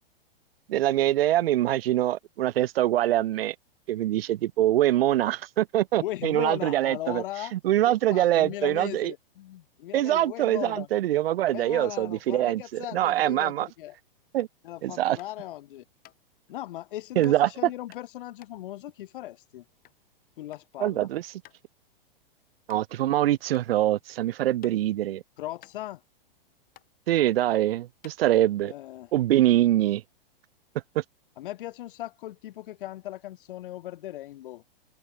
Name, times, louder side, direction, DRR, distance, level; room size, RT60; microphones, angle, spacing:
voice 1, 0.7-3.5 3.9-7.2 7.5-9.1 9.9-13.7 14.3-14.5 14.8-15.2 17.2-17.5 20.8-21.3 22.7-25.2 27.1-28.7 29.1-30.0 31.0-31.1, right 13 dB, 80° right, 0.5 m, -24 dB
voice 2, 6.0-7.5 7.9-10.9 11.5-14.0 14.6-15.8 16.5-19.6 20.4-21.1 25.4-26.0 28.6-29.1 31.4-34.7, left 14 dB, 60° left, 1.6 m, -38 dB
sound 1, 14.4-14.6 15.2-15.5 16.0-16.2 17.2-17.4 17.9-20.0 20.3-20.7 21.0-21.1 21.4-21.6 22.1-22.2 22.7-22.8 23.5-23.7 24.1-25.1 25.3-25.4 25.6-26.4 26.7-26.9 27.5-27.6 28.0-28.7, left 15 dB, 30° left, 3.9 m, -54 dB
open air
hypercardioid pair, 130°, 29 cm